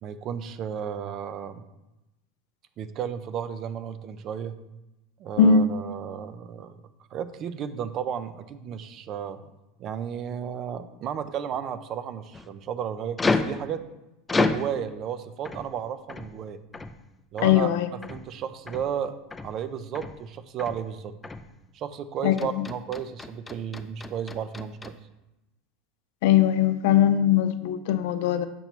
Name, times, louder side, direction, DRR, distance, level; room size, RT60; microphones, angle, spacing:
voice 1, 0.0-1.7 2.8-4.6 5.2-6.8 7.1-9.4 9.8-13.9 14.3-16.6 17.3-19.1 19.4-21.1 21.7-25.0, right 8 dB, 40° right, 0.5 m, -33 dB
voice 2, 5.4-5.7 17.4-17.9 22.2-22.7 26.2-28.5, left 8 dB, 75° left, 0.5 m, -20 dB
sound 1, 12.3-12.5 13.2-13.6 14.3-14.7 15.4-15.7 16.1-16.4 16.7-17.0 17.4-17.7 18.0-18.3 18.7-18.9 19.3-19.6 19.9-20.2 20.6-20.9 21.2-21.5 22.4-25.0, left 3 dB, 15° left, 0.4 m, -30 dB
6.8 x 3.0 x 5.9 m
supercardioid pair, 130°, 0 cm